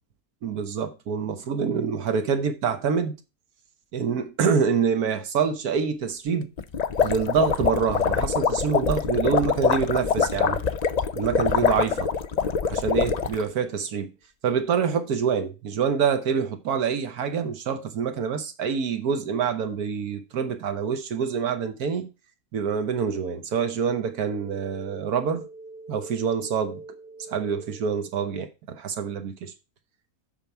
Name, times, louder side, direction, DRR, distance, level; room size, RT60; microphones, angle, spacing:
voice 1, 0.4-3.2 3.9-6.5 7.0-10.6 11.2-12.1 12.7-14.1 14.4-22.1 22.5-29.5, right 6 dB, 85° right, 1.5 m, -26 dB
sound 1, 6.6-13.4, left 6 dB, 80° left, 0.3 m, -24 dB
9.0 x 5.5 x 4.5 m
omnidirectional pair, 1.6 m